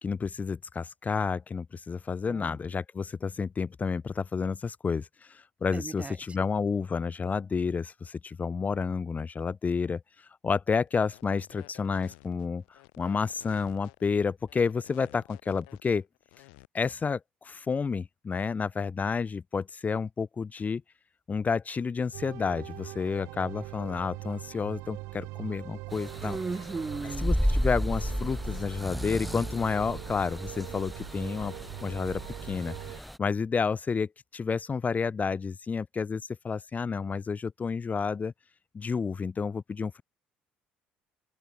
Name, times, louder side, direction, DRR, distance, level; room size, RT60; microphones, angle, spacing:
voice 1, 0.0-10.0 10.4-16.1 16.7-20.8 21.3-26.4 27.2-31.5 31.8-38.3 38.7-40.0, left 5 dB, 30° left, 1.0 m, -30 dB
voice 2, 2.3-2.6 5.7-6.1 26.2-27.3, right 4 dB, 25° right, 1.3 m, -36 dB
sound 1, 10.9-16.7, left 30 dB, 70° left, 7.0 m, -53 dB
sound 2, 22.1-33.0, right 23 dB, 65° right, 3.2 m, -42 dB
sound 3, 25.9-33.2, equal, ahead, 1.7 m, -33 dB
open air
figure-of-eight pair, 55°, 5 cm